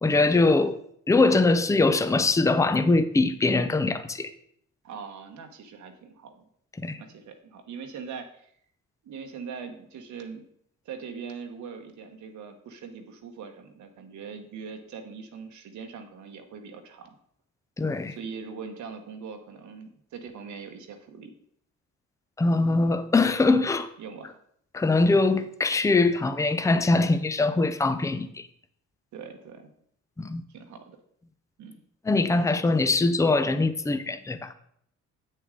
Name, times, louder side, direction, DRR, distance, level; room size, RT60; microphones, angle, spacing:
voice 1, 0.0-0.8 1.1-4.3 6.8-7.0 17.8-18.2 22.4-23.9 24.7-28.5 30.2-30.4 32.0-34.5, left 3 dB, 10° left, 0.5 m, -22 dB
voice 2, 4.8-6.4 7.0-8.5 9.0-10.5 10.8-17.2 18.1-21.3 24.0-24.4 29.1-29.7 30.5-31.0 31.6-31.8, right 6 dB, 70° right, 1.1 m, -41 dB
7.9 x 6.5 x 3.7 m
cardioid pair, 90°, 30 cm